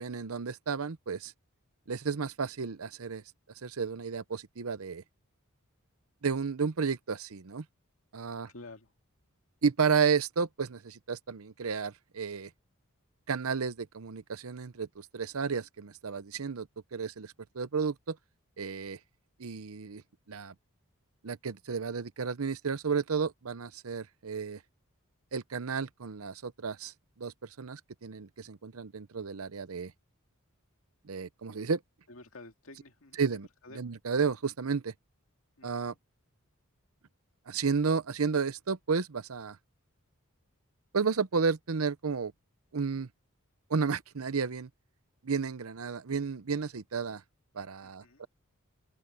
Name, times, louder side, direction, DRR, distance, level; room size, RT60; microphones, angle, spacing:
voice 1, 0.0-1.3 1.9-3.2 3.6-5.0 6.2-7.6 8.1-8.5 9.6-12.5 13.3-18.2 18.6-19.0 19.4-20.0 20.3-20.5 21.2-24.6 25.3-29.9 31.1-31.8 33.2-33.5 33.8-34.9 35.6-35.9 37.5-39.6 40.9-42.3 42.7-43.1 43.7-44.7 45.2-47.2 47.5-48.3, right 5 dB, 80° right, 0.8 m, -32 dB
voice 2, 8.5-8.9 17.6-17.7 32.1-33.3 33.6-33.9 35.6-36.0 47.8-48.2, left 2 dB, 65° left, 2.4 m, -51 dB
open air
head